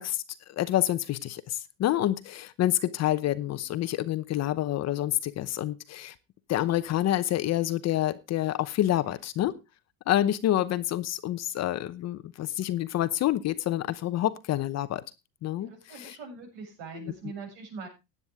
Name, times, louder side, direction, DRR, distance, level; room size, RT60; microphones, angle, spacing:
voice 1, 0.0-6.1 6.5-9.5 10.1-15.0 15.4-16.2 16.9-17.1, left 13 dB, 40° left, 14 dB, 0.9 m, -28 dB
voice 2, 15.6-17.9, right 5 dB, 65° right, 3 dB, 7.7 m, -42 dB
16.0 x 9.7 x 3.5 m, 0.26 s
supercardioid pair, 125°, 41 cm